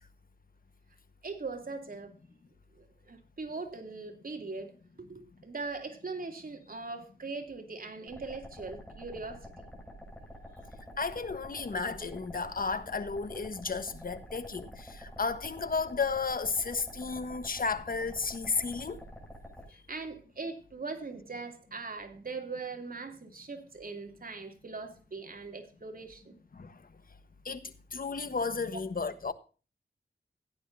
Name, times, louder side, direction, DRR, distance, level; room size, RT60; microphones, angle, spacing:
voice 1, 1.2-2.1 2.8-4.7 5.0-9.5 10.5-10.7 19.7-26.3, right 4 dB, 55° right, 2.9 m, -41 dB
sound 1, 8.1-19.6, equal, 5° left, 7.0 m, -48 dB
voice 2, 11.0-19.0 26.5-26.8 27.4-29.3, left 4 dB, 55° left, 1.4 m, -33 dB
16.0 x 10.0 x 2.7 m
wide cardioid pair, 65°, 18 cm